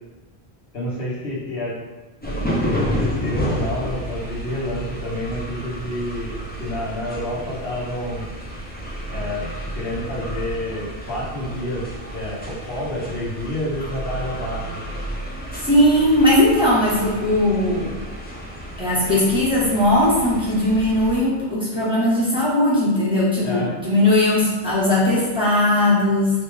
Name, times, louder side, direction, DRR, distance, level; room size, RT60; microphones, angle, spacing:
voice 1, 0.7-1.8 2.2-6.3 6.6-8.3 9.1-9.4 9.7-11.9 12.1-14.8 23.4-23.7, left 1 dB, 70° left, -6 dB, 1.3 m, -29 dB
sound 1, 2.2-21.2, equal, 10° left, 0.5 m, -31 dB
voice 2, 15.6-17.9 18.8-26.3, left 1 dB, 5° right, -9 dB, 1.3 m, -18 dB
4.1 x 3.2 x 3.4 m, 1.2 s
omnidirectional pair, 1.0 m